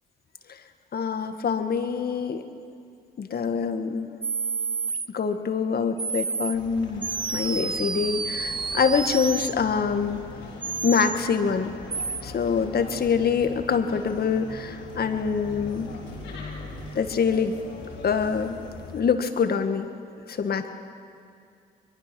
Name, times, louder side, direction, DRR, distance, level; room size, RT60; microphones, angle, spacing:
voice 1, 0.9-2.4 3.2-4.1 5.1-7.1 7.3-10.2 10.8-11.7 12.2-15.9 16.9-17.5 18.0-18.6 18.9-19.9 20.3-20.7, left 6 dB, 55° left, 7 dB, 1.7 m, -25 dB
sound 1, 4.2-5.1 6.0-6.5 7.0-9.5 10.6-11.2 11.9-12.2, right 4 dB, 25° right, 0.7 m, -29 dB
sound 2, 6.5-19.0, left 2 dB, 80° left, 3.9 m, -41 dB
23.5 x 22.0 x 6.2 m, 2.4 s
supercardioid pair, 55°, 19 cm